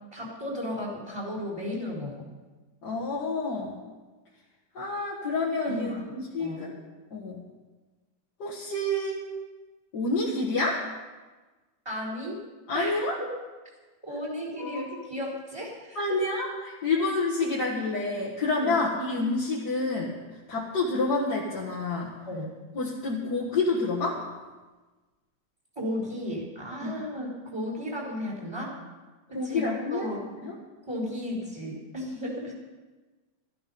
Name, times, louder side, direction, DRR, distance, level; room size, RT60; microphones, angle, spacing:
voice 1, 0.1-2.3 5.6-6.0 6.4-6.7 11.8-12.4 12.7-12.9 14.0-16.0 18.6-18.7 22.3-22.5 25.8-28.7 29.3-29.6 29.9-30.2 30.8-32.5, left 1 dB, 15° right, -4 dB, 4.3 m, -34 dB
voice 2, 2.8-3.8 4.8-6.7 7.1-7.4 8.4-9.2 9.9-10.8 12.7-13.2 14.6-14.9 16.0-20.2 20.5-22.1 22.7-24.2 26.8-26.9 29.3-30.1 30.4-30.6, left 2 dB, 55° left, -5 dB, 2.1 m, -28 dB
13.5 x 13.0 x 5.5 m, 1.2 s
omnidirectional pair, 2.2 m